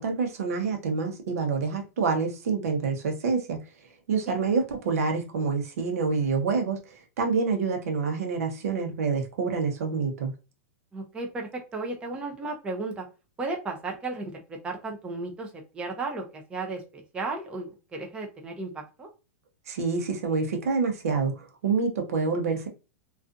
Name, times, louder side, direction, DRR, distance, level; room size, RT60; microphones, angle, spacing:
voice 1, 0.0-3.6 4.1-10.3 19.7-22.7, right 4 dB, 85° right, 0.8 m, -27 dB
voice 2, 10.9-13.1 13.4-19.1, right 3 dB, 15° right, 0.5 m, -34 dB
2.4 x 2.4 x 2.5 m
supercardioid pair, 150°, 8 cm